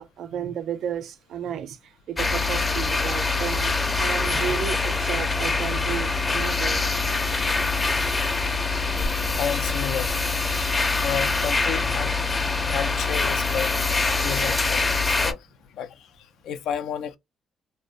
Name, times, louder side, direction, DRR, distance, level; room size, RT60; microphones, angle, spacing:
voice 1, 0.0-6.8 9.3-9.4 15.2-15.3, right 8 dB, 75° right, 0.4 m, -33 dB
sound 1, 2.2-15.3, left 3 dB, 25° left, 0.6 m, -24 dB
voice 2, 9.3-10.1 11.0-13.7 14.2-15.4 15.8-15.9 16.4-17.2, left 8 dB, 80° left, 0.4 m, -31 dB
2.6 x 2.0 x 2.3 m
cardioid pair, 90°, 0 cm